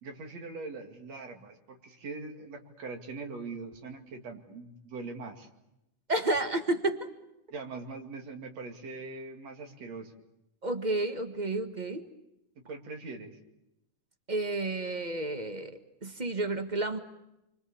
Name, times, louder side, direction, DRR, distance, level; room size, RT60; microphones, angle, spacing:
voice 1, 0.0-5.5 7.5-10.1 12.7-13.4, right 3 dB, 60° right, 4 dB, 3.5 m, -42 dB
voice 2, 6.1-7.1 10.6-12.1 14.3-17.0, right 2 dB, 35° right, 8 dB, 0.7 m, -31 dB
29.5 x 24.0 x 7.1 m, 0.87 s
omnidirectional pair, 3.5 m